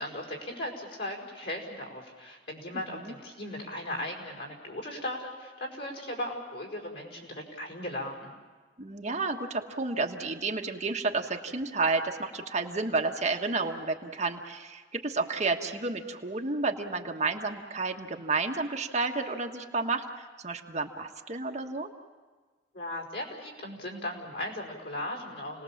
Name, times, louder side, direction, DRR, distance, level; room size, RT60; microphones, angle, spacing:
voice 1, 0.0-8.3 22.7-25.6, left 1 dB, 75° left, 0 dB, 5.0 m, -37 dB
voice 2, 8.8-20.1 20.4-21.9, right 3 dB, 40° right, 2 dB, 1.4 m, -31 dB
29.5 x 19.5 x 7.3 m, 1.4 s
head